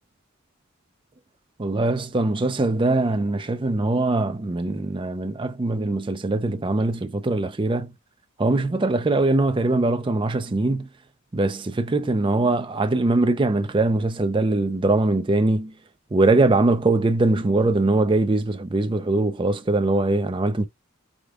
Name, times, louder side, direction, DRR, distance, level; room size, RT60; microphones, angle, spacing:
voice 1, 1.6-7.9 8.4-10.9 11.3-15.7 16.1-20.7, right 2 dB, 25° right, 0.4 m, -22 dB
5.0 x 2.2 x 3.6 m
head